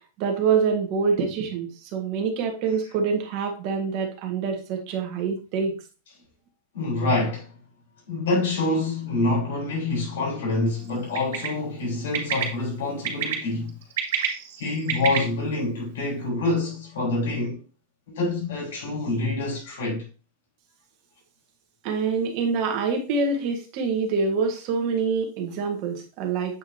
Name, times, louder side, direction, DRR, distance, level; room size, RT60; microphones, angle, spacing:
voice 1, 0.2-5.7 21.8-26.6, right 5 dB, 35° right, 1.5 m, -26 dB
voice 2, 6.7-7.5 8.1-13.8 14.6-17.6 18.1-20.1, left 2 dB, 85° left, 3.8 m, -26 dB
Bird, 11.1-11.5 12.1-12.4 13.0-13.3 13.8-15.2, right 9 dB, 65° right, 2.0 m, -26 dB
8.1 x 4.7 x 2.8 m
supercardioid pair, 175°, 0 cm